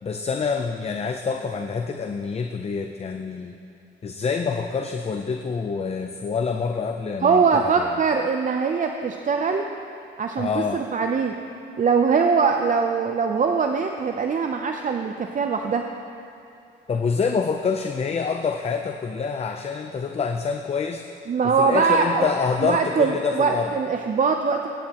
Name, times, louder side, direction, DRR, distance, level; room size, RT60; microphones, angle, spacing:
voice 1, 0.0-3.5 4.0-7.4 7.8-8.0 10.4-10.8 16.9-21.0 21.6-23.7, left 5 dB, 30° left, 5 dB, 0.6 m, -26 dB
voice 2, 7.2-9.7 10.2-11.3 11.8-15.9 21.3-24.7, right 5 dB, 40° right, 4 dB, 0.6 m, -22 dB
22.0 x 9.5 x 3.0 m, 2.6 s
cardioid pair, 90°, 20 cm